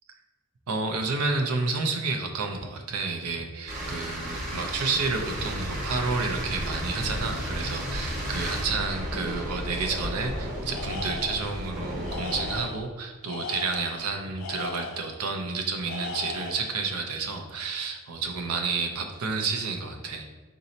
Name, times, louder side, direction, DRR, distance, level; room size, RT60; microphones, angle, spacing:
voice 1, 0.7-20.3, right 4 dB, 85° right, 3 dB, 0.5 m, -30 dB
sound 1, 3.7-12.6, equal, 35° right, 1.0 m, -33 dB
Tools, 10.7-11.6 12.0-12.9 13.2-15.2 15.8-16.8, left 4 dB, 65° left, 0.4 m, -37 dB
3.9 x 2.7 x 4.2 m, 1.3 s
head